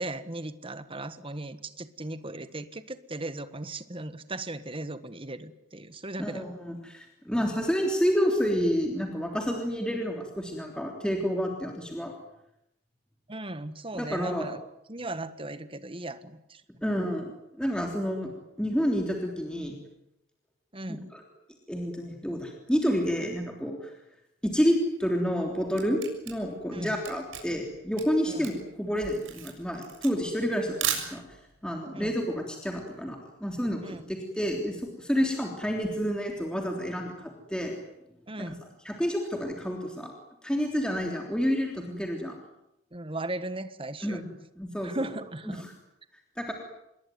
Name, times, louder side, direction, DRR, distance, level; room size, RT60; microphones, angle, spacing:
voice 1, 0.0-6.4 13.3-14.6 14.9-16.6 20.7-21.1 26.7-27.0 28.3-28.5 31.9-32.1 33.8-34.0 38.3-38.6 42.9-44.2 44.8-45.6, right 2 dB, 25° right, 12 dB, 1.5 m, -37 dB
voice 2, 6.2-12.1 13.9-14.5 16.8-18.3 18.6-19.7 21.1-21.2 21.7-23.9 24.4-31.2 31.6-37.8 38.4-38.6 38.8-40.1 40.4-42.3 44.0-44.3 44.6-45.1 45.5-45.6 46.4-46.5, equal, 5° left, 2 dB, 3.4 m, -29 dB
Camera, 25.3-31.6, right 9 dB, 70° right, 6.9 m, -36 dB
27.5 x 21.5 x 9.5 m, 0.83 s
head